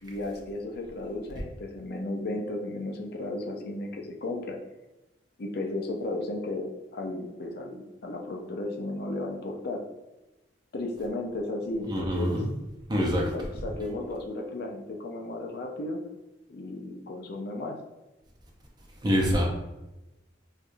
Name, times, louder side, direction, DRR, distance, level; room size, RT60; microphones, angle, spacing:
voice 1, 0.0-4.6 5.4-9.8 10.7-12.4 13.0-16.0 16.5-17.8, left 2 dB, 55° left, 1 dB, 0.5 m, -34 dB
voice 2, 11.9-12.4 12.9-13.2 19.0-19.4, equal, 25° right, -1 dB, 0.6 m, -25 dB
4.4 x 2.3 x 2.5 m, 1.0 s
head